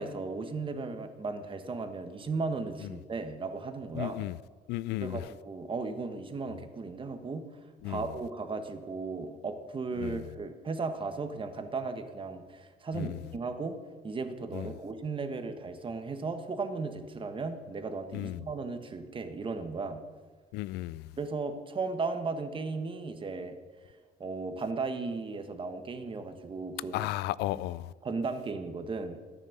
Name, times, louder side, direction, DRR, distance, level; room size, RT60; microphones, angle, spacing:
voice 1, 0.0-4.2 5.0-7.5 7.8-13.8 14.0-20.0 21.2-23.6 24.2-27.0 27.5-27.6 28.0-29.2, right 4 dB, 30° right, 1.5 m, -36 dB
voice 2, 3.9-4.4 4.7-5.2 7.8-8.0 10.0-10.2 12.9-13.2 14.5-14.7 18.1-18.4 20.5-21.1 26.9-27.9, left 16 dB, 85° left, 0.4 m, -34 dB
13.0 x 10.0 x 6.7 m
cardioid pair, 110°, 17 cm